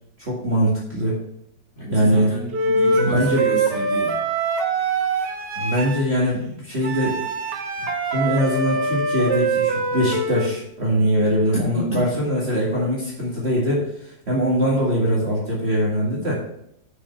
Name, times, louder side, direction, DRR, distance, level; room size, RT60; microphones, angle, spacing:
voice 1, 0.2-1.2 1.9-2.3 3.0-3.4 5.6-7.2 8.1-13.9 14.3-16.4, equal, 35° right, -5 dB, 2.1 m, -22 dB
voice 2, 1.7-4.2 11.5-12.0, right 1 dB, 25° left, -6 dB, 2.8 m, -29 dB
Wind instrument woodwind instrument, 2.5-6.0 6.8-10.6, right 3 dB, 65° right, 1.6 m, -23 dB
6.4 x 6.2 x 5.6 m, 0.72 s
omnidirectional pair, 2.0 m